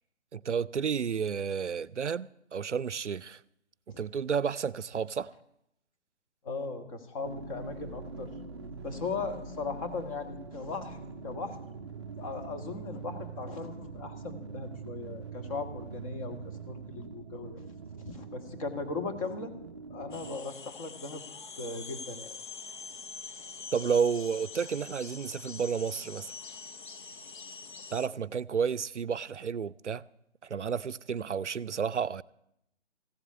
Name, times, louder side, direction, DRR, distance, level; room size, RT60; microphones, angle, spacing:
voice 1, 0.3-3.4 4.0-5.3 23.7-26.3 27.9-30.0 30.4-32.2, right 6 dB, 85° right, 0.5 m, -31 dB
voice 2, 6.4-8.3 8.8-11.6 12.2-17.6 18.0-19.5 19.9-21.2 21.6-22.3, left 4 dB, 30° left, 1.6 m, -38 dB
sound 1, 7.2-20.4, right 4 dB, 25° right, 0.5 m, -43 dB
sound 2, 20.1-28.1, left 5 dB, 45° left, 0.7 m, -45 dB
15.5 x 7.9 x 9.5 m
figure-of-eight pair, 140°, 34 cm